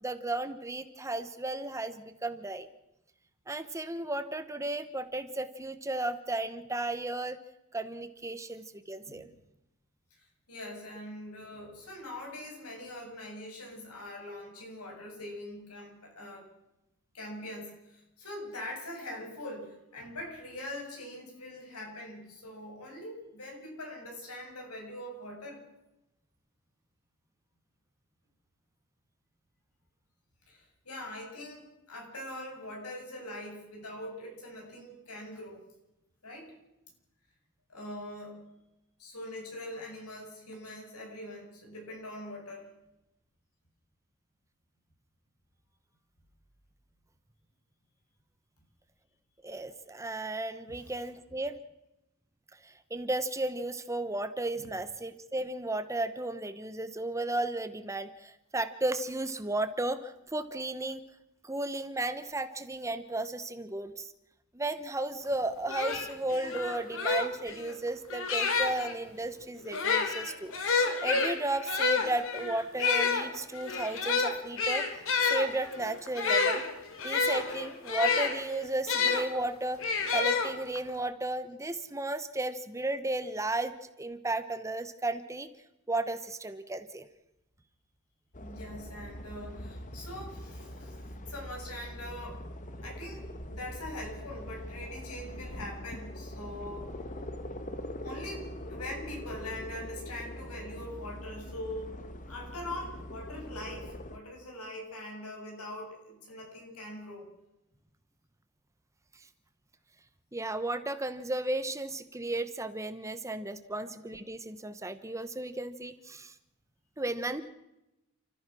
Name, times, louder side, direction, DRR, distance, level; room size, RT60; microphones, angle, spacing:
voice 1, 0.0-2.7 3.5-7.4 7.7-9.3 49.4-51.6 52.6-61.1 61.4-64.1 64.5-74.9 75.3-76.7 77.0-79.8 80.1-85.5 85.9-87.1 103.3-103.5 110.3-116.3 117.0-117.4, right 2 dB, 15° right, 11 dB, 1.0 m, -34 dB
voice 2, 10.2-16.5 17.1-25.6 30.5-35.6 36.2-36.5 37.7-38.5 39.0-42.7 50.7-50.8 54.6-54.7 88.3-92.4 92.8-96.9 98.0-102.0 102.3-107.3 113.8-113.9, left 1 dB, 85° left, 0 dB, 7.9 m, -43 dB
sound 1, 65.3-65.4 65.7-68.9 69.6-79.3 79.8-80.9, left 4 dB, 60° left, 2.9 m, -29 dB
sound 2, 88.3-104.2, left 1 dB, 35° left, 1.4 m, -42 dB
30.0 x 14.5 x 6.1 m, 0.93 s
head